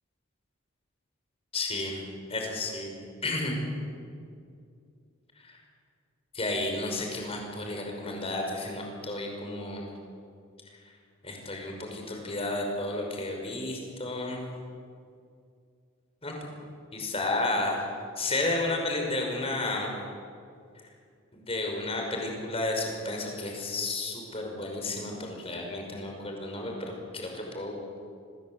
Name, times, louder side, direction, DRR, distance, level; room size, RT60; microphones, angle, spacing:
voice 1, 1.5-2.0 2.3-2.9 3.2-3.6 5.4-5.6 6.3-9.8 11.2-14.4 16.2-16.3 16.9-17.8 18.2-19.9 21.3-28.0, left 2 dB, 30° left, 1 dB, 5.7 m, -32 dB
26.0 x 21.0 x 8.1 m, 2.4 s
head